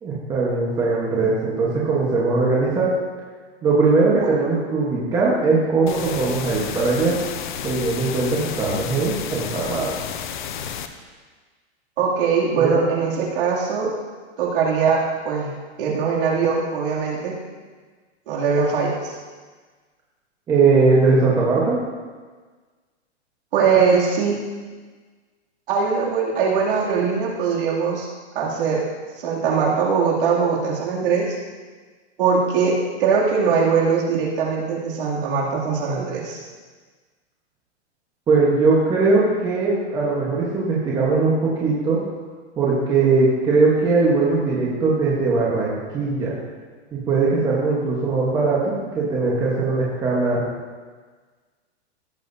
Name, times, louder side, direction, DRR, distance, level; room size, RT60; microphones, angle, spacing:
voice 1, 0.0-2.9 3.6-7.2 7.6-9.9 12.5-12.7 20.5-21.8 38.3-42.0 42.6-46.3 46.9-50.5, right 3 dB, 10° right, -6 dB, 1.1 m, -20 dB
sound 1, 5.9-10.9, left 8 dB, 45° left, 0.6 m, -31 dB
voice 2, 12.0-13.9 14.4-15.5 15.8-17.3 18.3-19.1 23.5-24.4 25.7-28.1 28.3-28.8 29.2-31.4 32.2-36.4, right 5 dB, 50° right, -3 dB, 2.6 m, -21 dB
16.5 x 7.3 x 2.7 m, 1.4 s
hypercardioid pair, 165°, 35 cm